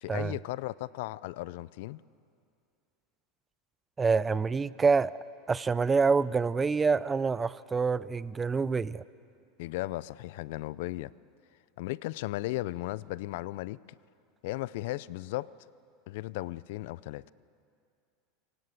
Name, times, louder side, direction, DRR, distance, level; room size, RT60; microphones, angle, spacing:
voice 1, 0.0-2.0 9.6-11.1 11.8-13.8 14.4-15.5 16.1-17.2, left 18 dB, 70° left, 20 dB, 0.5 m, -36 dB
voice 2, 4.0-5.1 5.5-9.0, right 5 dB, 20° right, 18 dB, 0.6 m, -26 dB
28.0 x 18.0 x 8.2 m, 2.4 s
supercardioid pair, 115°, 0 cm